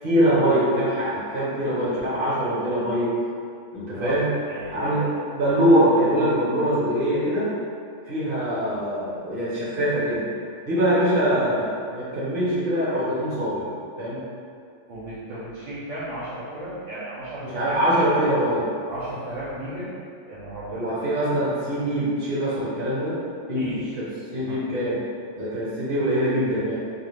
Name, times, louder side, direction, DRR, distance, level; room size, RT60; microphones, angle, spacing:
voice 1, 0.0-3.1 3.7-4.3 4.7-7.5 8.1-10.2 10.6-13.7 14.0-14.2 17.4-18.7 20.7-23.2 23.5-24.0 24.3-25.0 25.3-26.8, equal, 50° right, -9 dB, 0.9 m, -23 dB
voice 2, 3.9-4.8 14.9-17.7 18.9-19.9 20.3-20.9 23.5-24.7, right 1 dB, 75° right, -10 dB, 1.0 m, -35 dB
2.4 x 2.4 x 3.3 m, 2.3 s
omnidirectional pair, 1.3 m